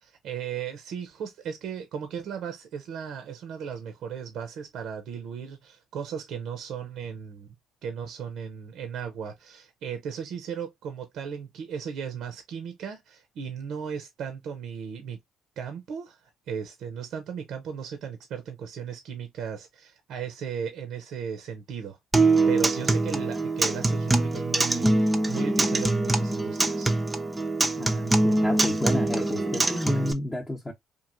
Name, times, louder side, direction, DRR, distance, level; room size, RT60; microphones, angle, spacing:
voice 1, 0.0-7.5 7.8-15.2 15.6-26.9, right 7 dB, 70° right, 0.6 m, -36 dB
Acoustic guitar, 22.1-30.1, right 2 dB, 15° right, 0.5 m, -24 dB
voice 2, 27.8-30.7, left 1 dB, 20° left, 0.8 m, -30 dB
3.0 x 2.4 x 2.4 m
supercardioid pair, 80°, 0 cm